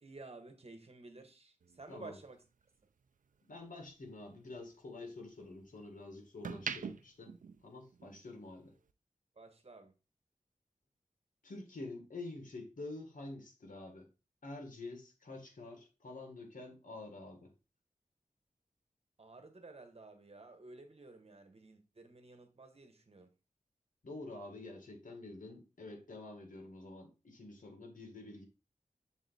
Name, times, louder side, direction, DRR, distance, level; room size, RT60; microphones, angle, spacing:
voice 1, 0.0-2.4 9.3-9.9 19.2-23.3, right 3 dB, 50° right, 1.3 m, -53 dB
sound 1, 1.6-3.9 4.3-5.8 6.2-8.3 8.6-8.9, right 6 dB, 80° right, 0.5 m, -45 dB
voice 2, 3.5-7.4 7.6-8.7 11.4-14.1 14.4-17.5 24.0-28.5, left 2 dB, 80° left, 1.8 m, -48 dB
7.2 x 3.9 x 4.1 m
wide cardioid pair, 75°, 13 cm